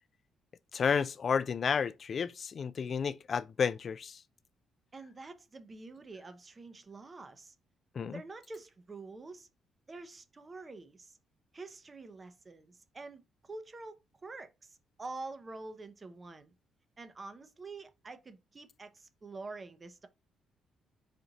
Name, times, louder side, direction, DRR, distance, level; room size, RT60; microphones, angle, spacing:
voice 1, 0.7-4.2 8.0-8.2, left 6 dB, 50° left, 0.3 m, -31 dB
voice 2, 4.9-7.5 8.1-9.5 9.9-11.2 11.5-16.5 17.0-20.1, right 3 dB, 30° right, 0.7 m, -47 dB
4.3 x 2.5 x 3.9 m
cardioid pair, 90°, 0 cm